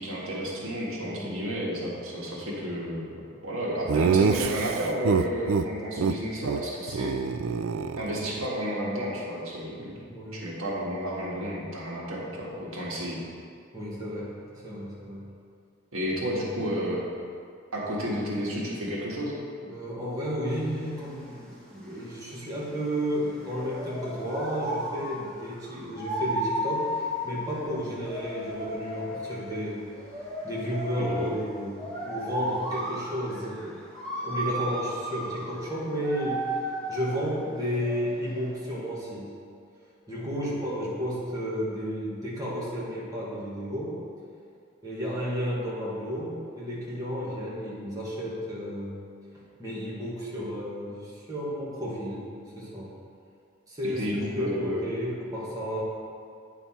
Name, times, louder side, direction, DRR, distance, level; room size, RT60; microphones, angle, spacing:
voice 1, 0.0-7.1 8.0-10.0 10.3-13.2 15.9-17.0 17.7-19.3 31.0-31.3 53.8-54.9, equal, 85° right, -4 dB, 1.7 m, -31 dB
voice 2, 1.0-1.4 10.0-10.4 13.7-14.3 14.6-15.3 19.6-29.9 30.4-33.9 34.2-36.5 36.9-39.4 40.1-44.0 44.8-49.1 49.3-53.0 53.7-55.8, equal, 15° right, -7 dB, 1.7 m, -32 dB
Laughter, 3.9-5.7 6.0-6.1 6.4-6.6 6.9-8.5, right 5 dB, 70° right, 0.3 m, -25 dB
sound 1, 20.5-38.5, equal, 5° left, 1.7 m, -35 dB
9.3 x 5.7 x 4.3 m, 2.3 s
head